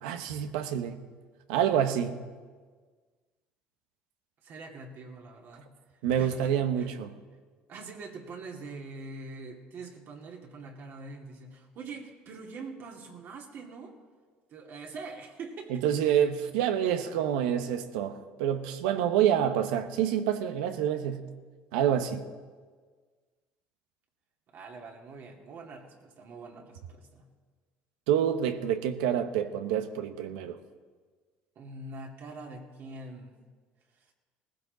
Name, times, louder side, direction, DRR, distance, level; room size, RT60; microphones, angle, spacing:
voice 1, 0.0-1.0 1.5-2.2 6.0-7.1 15.7-21.3 21.7-22.2 28.1-30.6, right 9 dB, 85° right, 1.0 m, -27 dB
voice 2, 4.4-5.6 6.2-6.9 7.7-13.9 14.5-15.8 17.0-17.1 24.5-27.2 31.6-33.4, right 3 dB, 60° right, 2.3 m, -44 dB
18.0 x 15.5 x 4.0 m
supercardioid pair, 85°, 4 cm